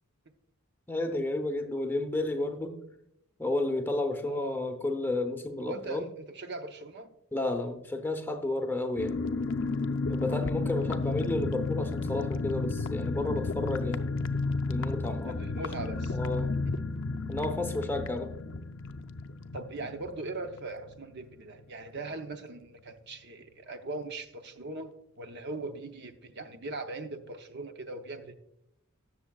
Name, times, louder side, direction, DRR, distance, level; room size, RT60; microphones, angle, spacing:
voice 1, 0.9-2.8 3.4-6.1 7.3-9.2 10.1-14.3 14.7-15.5 16.1-16.5 17.3-18.3, left 2 dB, 10° left, 5 dB, 0.7 m, -32 dB
voice 2, 4.2-4.6 5.6-7.1 15.3-16.2 16.7-16.8 19.5-24.9 25.2-28.3, right 2 dB, 50° right, 7 dB, 0.8 m, -40 dB
sound 1, 9.0-21.3 21.6-21.7 22.0-22.3, left 3 dB, 60° left, 0.5 m, -32 dB
19.0 x 6.8 x 2.3 m, 0.79 s
head